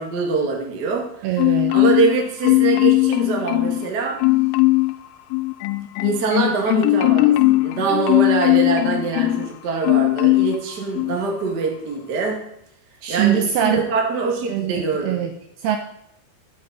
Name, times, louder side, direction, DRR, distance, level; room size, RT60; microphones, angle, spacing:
voice 1, 0.0-1.3 1.7-4.2 6.0-12.4 13.1-15.2, right 4 dB, 50° right, 0 dB, 1.2 m, -24 dB
voice 2, 1.2-1.8 13.0-13.8 14.5-15.8, right 10 dB, 80° right, 5 dB, 2.4 m, -23 dB
Marimba xylophone, 1.4-2.2 2.4-3.9 4.2-4.9 5.3-9.5 9.8-10.6 11.0-11.2, left 19 dB, 85° left, 2.9 m, -18 dB
12.0 x 7.9 x 4.1 m, 0.75 s
omnidirectional pair, 5.2 m